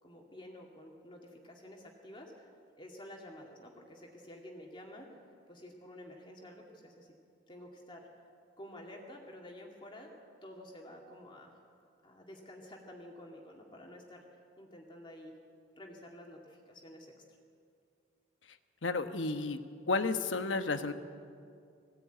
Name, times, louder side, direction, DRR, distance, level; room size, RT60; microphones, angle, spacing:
voice 1, 0.0-2.5 2.8-5.2 5.5-7.1 7.5-8.1 8.6-10.1 10.4-11.6 12.0-14.2 14.6-15.4 15.8-17.4, left 1 dB, 25° left, 0 dB, 2.3 m, -50 dB
voice 2, 18.8-19.6 19.9-20.9, left 3 dB, 90° left, 9 dB, 1.2 m, -32 dB
21.0 x 16.0 x 9.2 m, 2.4 s
head